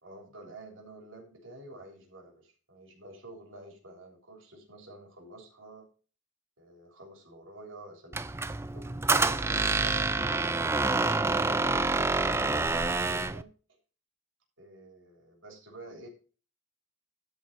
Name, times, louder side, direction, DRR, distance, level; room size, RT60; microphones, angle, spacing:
voice 1, 0.0-5.9 6.6-8.4 8.7-10.9 11.4-13.5 14.6-16.1, right 2 dB, 75° right, 0 dB, 3.4 m, -49 dB
Squeak, 8.1-13.4, right 3 dB, 10° right, 0.4 m, -27 dB
12.5 x 4.1 x 6.7 m, 0.37 s
head